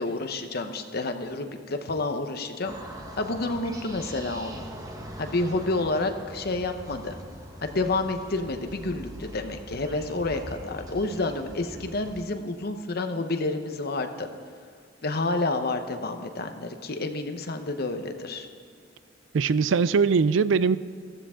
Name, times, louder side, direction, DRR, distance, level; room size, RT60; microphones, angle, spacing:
voice 1, 0.0-2.7 3.2-4.6 5.2-7.2 7.6-14.3 15.0-18.5, left 2 dB, 55° left, 7 dB, 1.0 m, -29 dB
sound 1, 2.6-12.2, equal, 20° right, 1.4 m, -42 dB
voice 2, 19.3-20.8, right 5 dB, 85° right, 16 dB, 0.4 m, -21 dB
14.5 x 14.5 x 3.7 m, 2.2 s
head